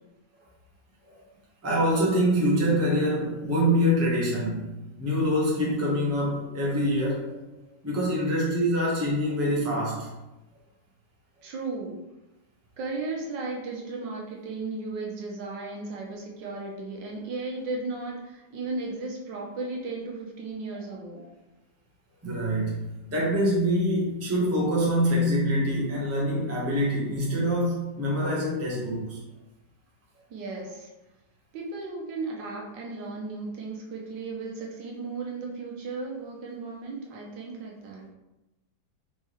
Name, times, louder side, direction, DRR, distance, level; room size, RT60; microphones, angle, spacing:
voice 1, 1.6-4.6 5.0-10.1 22.2-22.8 23.1-29.2, equal, 10° right, -5 dB, 0.7 m, -25 dB
voice 2, 11.4-12.0 12.8-21.2 30.3-30.9 31.5-38.0, right 3 dB, 70° right, -1 dB, 1.3 m, -35 dB
4.5 x 3.4 x 3.0 m, 1.0 s
omnidirectional pair, 2.1 m